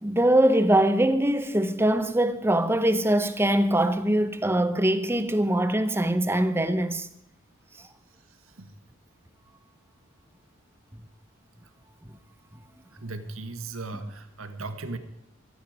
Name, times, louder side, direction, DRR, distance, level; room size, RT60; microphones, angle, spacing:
voice 1, 0.0-7.1, right 1 dB, 10° right, 0.9 m, -22 dB
voice 2, 8.3-8.7 12.9-15.0, right 3 dB, 85° right, 1.7 m, -37 dB
15.5 x 14.5 x 5.0 m
head